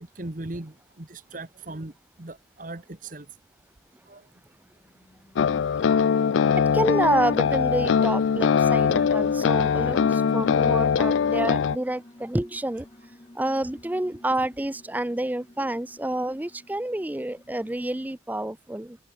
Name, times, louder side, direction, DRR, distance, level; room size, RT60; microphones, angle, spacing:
voice 1, 0.1-3.4 4.1-4.3, right 2 dB, 45° right, 1.3 m, -38 dB
Alarm, 4.7-18.1, left 1 dB, 25° left, 0.9 m, -47 dB
sound 1, 5.3-11.8, left 6 dB, 80° left, 0.4 m, -22 dB
voice 2, 6.5-12.9 13.3-19.0, right 1 dB, 10° right, 0.4 m, -28 dB
head